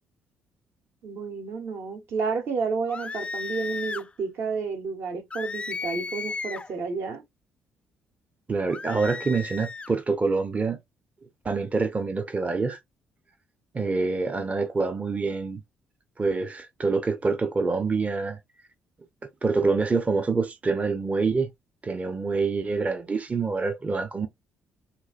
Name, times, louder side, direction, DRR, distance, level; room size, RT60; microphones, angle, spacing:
voice 1, 1.0-7.2 8.8-8.9, right 5 dB, 60° right, 0.9 m, -31 dB
sound 1, 2.9-4.1 5.3-6.7 8.7-9.9, left 4 dB, 25° left, 0.3 m, -34 dB
voice 2, 8.5-10.8 11.4-12.8 13.7-15.6 16.2-18.4 19.4-21.5 21.8-24.3, right 4 dB, 30° right, 0.6 m, -26 dB
3.9 x 2.4 x 2.4 m
hypercardioid pair, 50°, 5 cm